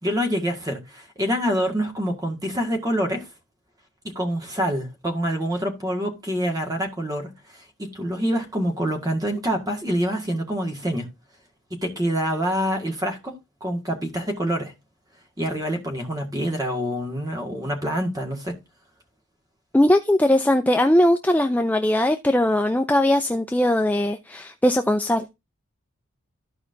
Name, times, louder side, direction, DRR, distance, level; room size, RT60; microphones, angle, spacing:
voice 1, 0.0-3.3 4.0-11.1 11.7-14.7 15.4-18.6, equal, 15° right, 1.8 m, -26 dB
voice 2, 19.7-25.3, left 1 dB, 5° left, 0.4 m, -20 dB
14.5 x 4.8 x 2.6 m
head